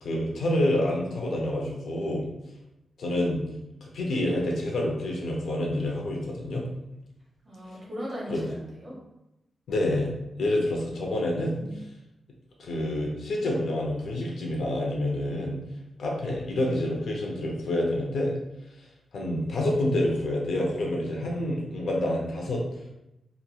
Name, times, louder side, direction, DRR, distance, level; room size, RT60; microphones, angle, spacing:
voice 1, 0.0-2.3 3.0-3.4 3.8-6.7 8.3-8.5 9.7-11.6 12.6-15.6 16.0-18.3 19.1-22.6, left 1 dB, 70° left, -1 dB, 0.6 m, -28 dB
voice 2, 7.4-8.9 11.1-11.8, equal, 20° right, -7 dB, 1.1 m, -39 dB
2.9 x 2.5 x 2.3 m, 0.89 s
wide cardioid pair, 155°, 0 cm